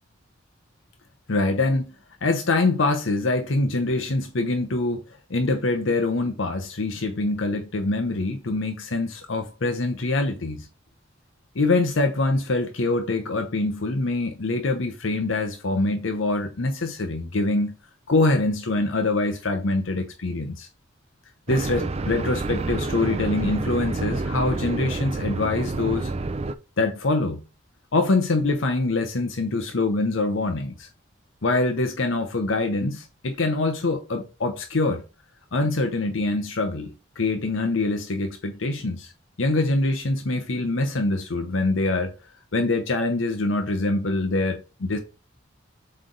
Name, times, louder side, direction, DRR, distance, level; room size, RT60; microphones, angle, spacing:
voice 1, 1.3-1.9 2.2-5.0 5.3-10.7 11.5-17.7 18.1-20.7 21.5-26.1 26.8-27.4 27.9-30.9 31.4-35.0 35.5-39.1 39.4-42.1 42.5-45.0, left 2 dB, 75° left, 0.8 m, -24 dB
sound 1, 21.5-26.5, right 3 dB, 30° right, 0.5 m, -28 dB
7.7 x 3.3 x 3.9 m
head